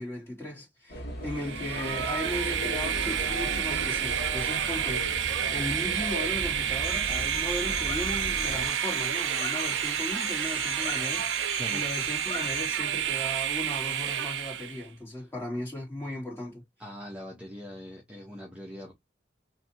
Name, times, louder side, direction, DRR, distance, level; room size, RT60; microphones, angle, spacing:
voice 1, 0.0-16.6, left 1 dB, 15° left, 2.2 m, -37 dB
sound 1, 0.9-8.7, equal, 60° left, 1.2 m, -37 dB
Train, 1.3-14.8, right 10 dB, 75° right, 0.5 m, -30 dB
sound 2, 6.8-12.8, left 4 dB, 35° left, 0.9 m, -40 dB
voice 2, 16.8-18.9, left 1 dB, 5° right, 0.7 m, -41 dB
3.3 x 2.7 x 2.7 m
head